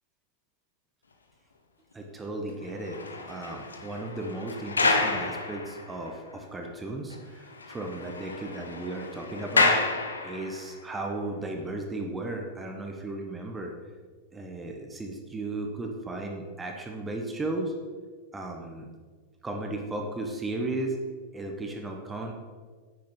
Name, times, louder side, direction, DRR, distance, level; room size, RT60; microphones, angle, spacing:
voice 1, 1.9-9.8 10.2-13.7 14.3-17.7 18.3-18.9 19.4-21.0 21.3-22.3, right 2 dB, 15° right, 2 dB, 1.4 m, -35 dB
sound 1, 2.6-6.3 6.6-6.7 7.1-7.2 7.5-10.7 11.4-11.6, left 3 dB, 75° left, 1.0 m, -29 dB
9.8 x 9.3 x 4.0 m, 1.5 s
figure-of-eight pair, 90°, 0 cm